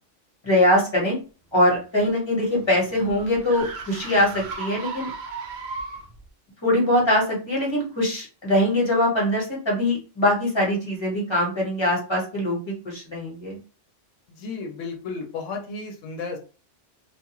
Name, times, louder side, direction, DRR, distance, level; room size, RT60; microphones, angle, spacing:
voice 1, 0.4-1.2 1.5-5.1 6.6-13.6, left 1 dB, 25° left, -4 dB, 1.1 m, -22 dB
sound 1, 2.1-6.3, right 4 dB, 60° right, 0.5 m, -36 dB
voice 2, 14.3-16.4, left 4 dB, 85° left, 2 dB, 1.0 m, -33 dB
2.4 x 2.3 x 2.9 m, 0.35 s
omnidirectional pair, 1.3 m